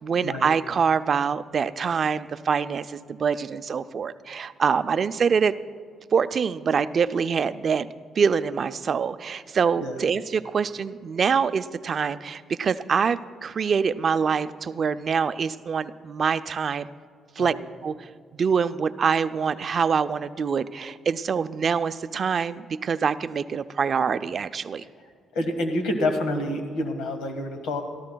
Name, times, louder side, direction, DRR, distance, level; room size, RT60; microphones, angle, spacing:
voice 1, 0.0-5.5 6.1-7.9 8.2-16.9 17.4-17.5 17.8-18.1 18.3-24.8, right 6 dB, 50° right, 12 dB, 0.4 m, -25 dB
voice 2, 25.3-27.8, left 1 dB, 85° left, 7 dB, 1.5 m, -27 dB
25.0 x 13.5 x 2.3 m, 2.1 s
cardioid pair, 90°, 0 cm